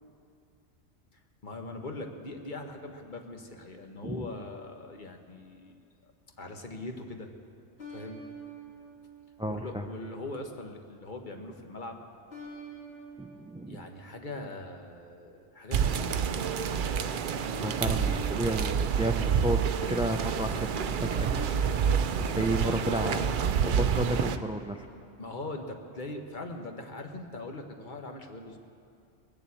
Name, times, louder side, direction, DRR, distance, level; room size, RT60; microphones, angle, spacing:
voice 1, 1.4-5.7 6.4-7.3 7.9-8.2 9.5-12.0 13.7-16.0 17.8-18.0 25.2-28.6, left 2 dB, 45° left, 4 dB, 1.3 m, -41 dB
sound 1, 4.1-5.5 7.8-10.3 12.3-14.9 16.7-19.2 21.3-23.6, right 2 dB, 65° left, 3.0 m, -50 dB
voice 2, 9.4-9.9 13.2-13.8 17.6-19.6 19.9-21.3 21.7-23.3 23.6-24.9, right 1 dB, 5° right, 6 dB, 0.4 m, -32 dB
sound 2, 15.7-24.4, right 7 dB, 55° right, 0.6 m, -28 dB
sound 3, 15.8-23.6, right 1 dB, 40° right, 1.6 m, -42 dB
21.0 x 7.1 x 8.4 m, 2.4 s
omnidirectional pair, 1.2 m